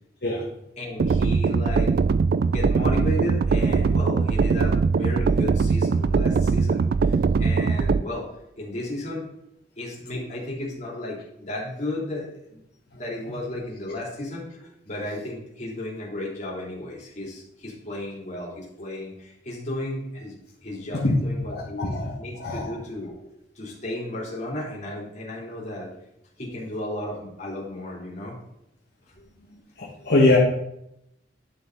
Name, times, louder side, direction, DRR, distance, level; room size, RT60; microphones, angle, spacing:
voice 1, 0.8-1.9 2.5-8.3 8.6-9.2 9.8-12.6 12.9-20.3 20.6-25.9 26.4-28.3, left 1 dB, 40° left, -4 dB, 3.3 m, -34 dB
sound 1, 1.0-8.0, right 5 dB, 55° right, 0.3 m, -21 dB
voice 2, 21.5-22.7 29.8-30.4, left 2 dB, 65° left, -5 dB, 1.6 m, -23 dB
11.0 x 5.8 x 3.9 m, 0.81 s
head